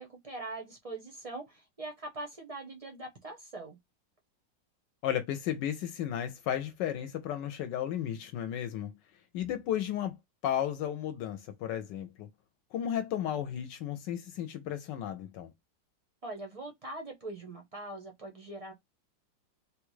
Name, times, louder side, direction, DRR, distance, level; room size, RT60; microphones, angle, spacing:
voice 1, 0.0-3.8 16.2-18.7, right 2 dB, 60° right, 0.3 m, -42 dB
voice 2, 5.0-8.9 9.3-10.2 10.4-12.3 12.7-15.5, left 10 dB, 80° left, 1.2 m, -34 dB
3.5 x 2.3 x 3.0 m
omnidirectional pair, 2.0 m